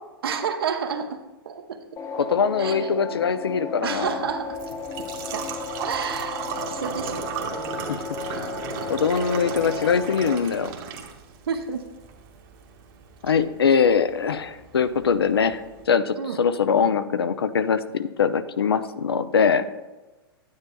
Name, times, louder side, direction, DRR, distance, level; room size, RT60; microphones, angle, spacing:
voice 1, 0.2-1.2 1.4-1.8 2.6-2.9 3.8-4.6 5.3-5.5 5.8-7.2 7.5-7.9 9.7-9.8 11.5-11.8 16.1-16.4, right 6 dB, 70° right, 6 dB, 1.0 m, -30 dB
sound 1, 2.0-10.3, left 5 dB, 20° left, 0.8 m, -34 dB
voice 2, 2.2-4.2 7.9-8.0 8.9-10.7 13.2-19.6, left 6 dB, 80° left, 12 dB, 0.6 m, -22 dB
Engine / Trickle dribble / Fill (with liquid), 3.9-15.8, right 7 dB, 45° right, 1.4 m, -36 dB
9.9 x 9.5 x 2.3 m, 1.1 s
hypercardioid pair, 105°, 13 cm